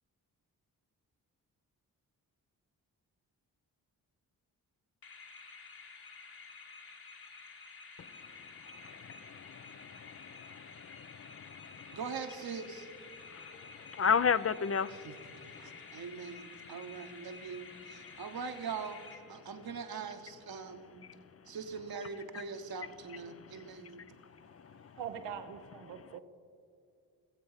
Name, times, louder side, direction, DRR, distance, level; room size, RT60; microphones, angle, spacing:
sound 1, 5.0-19.7, left 4 dB, 60° left, 1.9 m, -51 dB
voice 1, 8.8-12.0 13.3-15.1 15.6-15.7, left 6 dB, 35° left, 15 dB, 0.5 m, -34 dB
voice 2, 11.9-12.9 14.9-15.2 15.5-21.1 21.5-24.0, right 5 dB, 60° right, 7 dB, 1.3 m, -42 dB
voice 3, 25.0-26.2, right 8 dB, 85° right, 8 dB, 1.0 m, -42 dB
18.0 x 7.8 x 5.7 m, 2.5 s
supercardioid pair, 40°, 41 cm